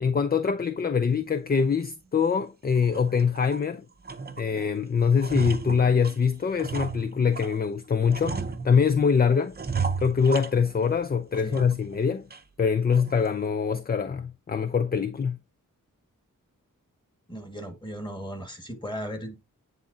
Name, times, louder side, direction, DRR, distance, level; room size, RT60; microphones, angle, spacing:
voice 1, 0.0-3.8 4.4-8.4 8.6-9.5 10.0-12.2 12.6-15.4, left 6 dB, 30° left, 0.4 m, -24 dB
sound 1, 1.6-1.7 2.2-2.3 2.8-3.7 4.0-4.7 5.0-7.6 8.1-9.0 9.5-11.0 11.3-12.0 12.3-12.4 12.9-13.3, right 5 dB, 30° right, 0.7 m, -34 dB
voice 2, 17.3-19.3, equal, 15° left, 1.7 m, -36 dB
9.5 x 3.7 x 2.7 m
wide cardioid pair, 70°, 33 cm